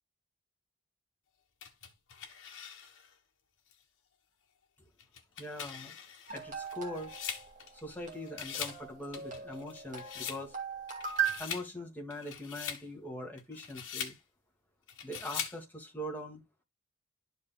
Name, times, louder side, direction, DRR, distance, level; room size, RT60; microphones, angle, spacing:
sound 1, 1.6-3.1 3.7-3.8 5.0-8.0 8.3-8.8 9.1-10.4 10.9-11.7 12.1-12.8 13.4-14.2 14.9-15.6, left 8 dB, 60° left, 1.6 m, -42 dB
voice 1, 5.4-6.0 6.3-7.1 7.8-10.5 11.4-14.1 15.0-16.4, left 1 dB, 10° left, 2.0 m, -42 dB
sound 2, 6.3-11.4, right 8 dB, 35° right, 2.3 m, -38 dB
12.0 x 5.2 x 2.2 m
head